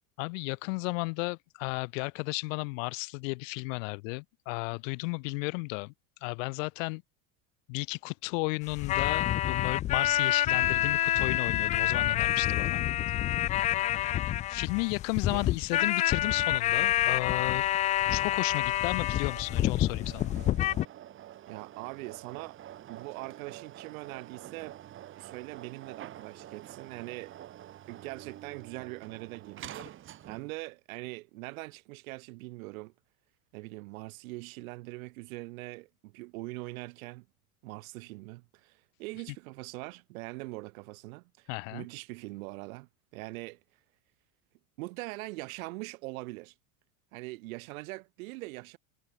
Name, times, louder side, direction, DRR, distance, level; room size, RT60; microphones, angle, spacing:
voice 1, 0.2-5.9 6.2-7.0 7.7-12.8 14.5-17.7 18.1-20.3 41.5-41.8, left 31 dB, 65° left, 1.6 m, -34 dB
sound 1, 8.7-20.9, left 13 dB, 20° left, 0.3 m, -27 dB
sound 2, 18.9-30.6, right 12 dB, 30° right, 1.6 m, -48 dB
voice 2, 21.5-22.6 22.9-24.8 25.2-27.3 27.9-29.9 30.3-32.9 33.5-37.3 37.6-43.6 44.8-46.5 47.1-48.8, right 23 dB, 75° right, 3.2 m, -42 dB
supercardioid pair, 155°, 42 cm